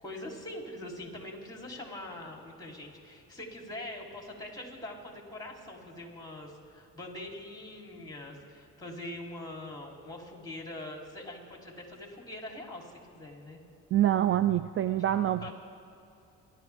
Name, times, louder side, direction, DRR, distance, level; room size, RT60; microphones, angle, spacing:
voice 1, 0.0-13.6 15.4-15.5, left 1 dB, 15° left, 0 dB, 3.5 m, -43 dB
voice 2, 13.9-15.5, right 12 dB, 45° right, 13 dB, 0.4 m, -26 dB
28.5 x 12.0 x 3.6 m, 2.8 s
cardioid pair, 90°, 30 cm